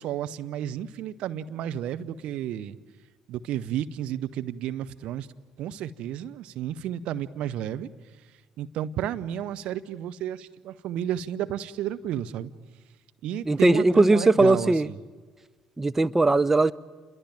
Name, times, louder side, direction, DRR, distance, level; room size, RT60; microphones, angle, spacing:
voice 1, 0.0-2.8 3.3-5.3 5.6-7.9 8.6-12.5 13.2-15.0, right 10 dB, 55° right, 0.9 m, -32 dB
voice 2, 13.5-14.9 15.8-16.7, right 2 dB, 15° right, 0.8 m, -19 dB
27.0 x 22.0 x 8.9 m
figure-of-eight pair, 50°, 2 cm